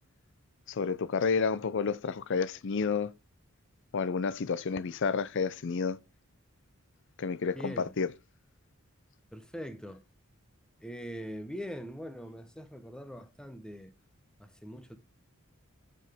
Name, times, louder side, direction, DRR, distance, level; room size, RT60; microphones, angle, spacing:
voice 1, 0.7-3.1 3.9-6.0 7.2-8.1, left 5 dB, 55° left, 0.5 m, -30 dB
voice 2, 7.5-7.9 9.3-10.0 10.8-13.9 14.4-15.0, equal, 5° left, 0.8 m, -42 dB
7.7 x 6.4 x 3.5 m
head